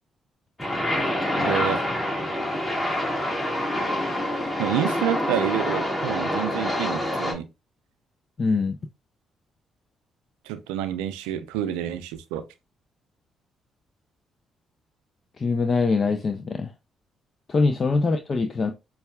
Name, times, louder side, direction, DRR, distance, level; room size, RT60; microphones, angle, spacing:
sound 1, 0.6-7.3, left 1 dB, 20° left, 1.6 m, -26 dB
voice 1, 1.4-1.8 4.6-7.5 10.4-12.4, right 11 dB, 90° right, 0.4 m, -28 dB
voice 2, 8.4-8.8 15.4-16.7 17.5-18.7, left 4 dB, 45° left, 0.4 m, -23 dB
5.2 x 2.3 x 2.2 m
supercardioid pair, 55°, 0 cm